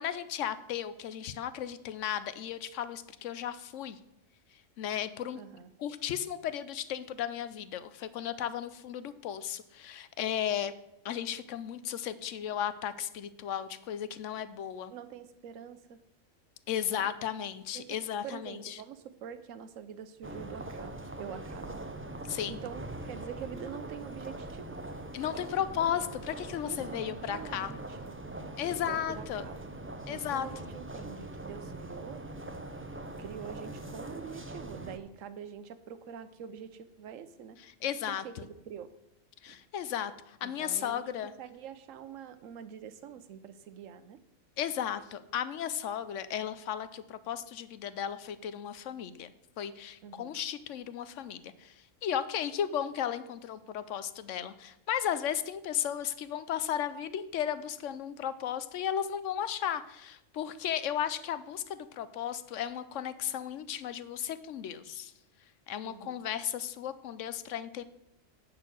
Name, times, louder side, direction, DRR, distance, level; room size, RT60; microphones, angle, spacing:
voice 1, 0.0-4.0 4.8-5.4 5.8-10.7 11.0-14.9 16.7-18.8 22.2-22.6 25.1-27.7 28.6-29.4 30.1-30.5 37.8-38.2 39.4-41.3 44.6-49.3 49.6-51.7 52.0-65.1 65.7-67.8, left 9 dB, 70° left, 14 dB, 1.0 m, -35 dB
voice 2, 5.3-5.7 14.4-14.5 14.9-16.0 16.9-17.1 17.7-21.8 22.5-24.8 26.6-28.3 28.9-29.7 30.1-32.3 33.2-37.6 38.1-39.0 39.5-39.6 40.4-41.1 41.4-44.2 50.0-50.4 65.8-66.2, right 8 dB, 75° right, 12 dB, 1.1 m, -45 dB
sound 1, 20.2-35.0, right 2 dB, 15° right, 0.4 m, -42 dB
10.5 x 4.6 x 7.8 m, 0.86 s
omnidirectional pair, 1.4 m